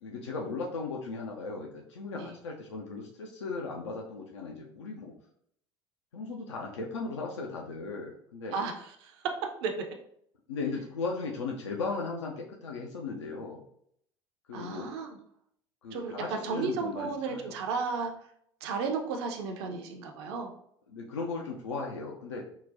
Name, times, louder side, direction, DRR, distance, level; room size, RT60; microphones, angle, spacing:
voice 1, 0.0-5.1 6.1-8.5 10.5-13.6 14.5-14.9 15.8-17.5 20.9-22.4, left 4 dB, 75° left, -1 dB, 0.4 m, -37 dB
voice 2, 8.5-9.1 9.6-9.7 14.5-15.2 15.9-18.1 18.6-20.5, right 4 dB, 60° right, 4 dB, 0.5 m, -33 dB
3.8 x 2.1 x 2.6 m, 0.69 s
figure-of-eight pair, 65°, 15 cm